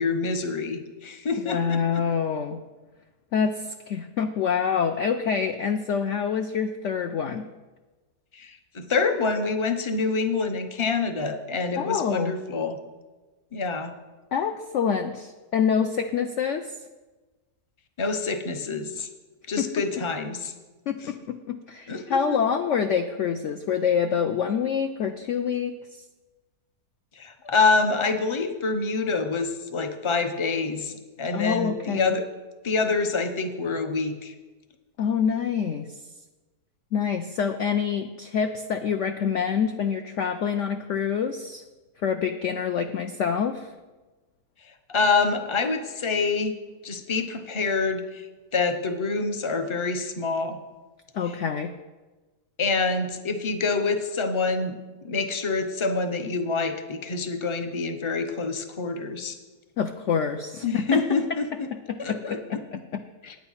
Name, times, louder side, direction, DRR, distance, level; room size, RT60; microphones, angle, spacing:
voice 1, 0.0-2.0 8.3-12.8 13.5-13.9 18.0-19.1 19.5-20.5 21.9-22.4 27.2-32.2 32.6-34.3 44.9-46.5 46.8-48.3 48.5-50.6 52.6-54.8 55.0-59.4 60.6-61.7 62.0-62.4 63.2-63.3, left 4 dB, 35° left, 7 dB, 0.4 m, -26 dB
voice 2, 1.4-2.6 3.3-7.4 11.8-12.4 14.3-16.7 19.6-19.7 20.9-26.0 31.3-32.2 35.0-36.0 36.9-41.6 42.0-43.7 51.1-51.7 59.8-61.0 61.7-63.0, left 7 dB, 70° left, 7 dB, 0.7 m, -26 dB
9.3 x 8.9 x 5.6 m, 1.2 s
omnidirectional pair, 1.8 m